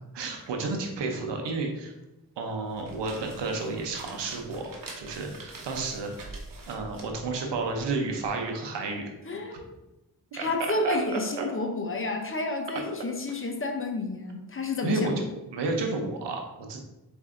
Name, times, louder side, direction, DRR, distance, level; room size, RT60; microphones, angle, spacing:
voice 1, 0.1-1.9 2.4-4.7 5.0-6.1 6.7-9.1 9.5-9.6 10.4-10.5 10.8-11.5 12.7-12.8 14.8-15.2 15.5-16.8, right 3 dB, 85° right, 2 dB, 0.8 m, -31 dB
sound 1, 2.6-8.3, right 3 dB, 50° right, 1.0 m, -45 dB
voice 2, 9.3-9.7 10.3-15.2, left 2 dB, 30° left, 4 dB, 0.7 m, -30 dB
4.2 x 2.7 x 3.7 m, 0.97 s
cardioid pair, 50°, 41 cm